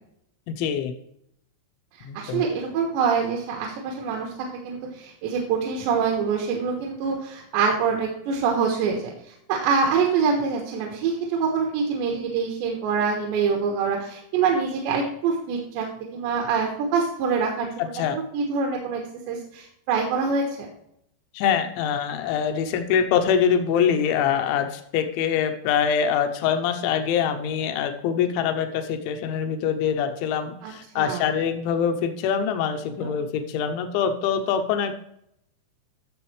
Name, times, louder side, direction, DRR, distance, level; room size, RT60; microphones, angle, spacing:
voice 1, 0.5-0.9 2.0-2.4 17.9-18.2 21.3-34.9, left 7 dB, 90° left, 7 dB, 3.2 m, -24 dB
voice 2, 2.1-15.9 16.1-19.0 19.3-20.7 30.6-31.2 33.0-33.1, right 5 dB, 80° right, 0 dB, 3.4 m, -25 dB
13.5 x 7.0 x 3.2 m, 0.76 s
omnidirectional pair, 5.1 m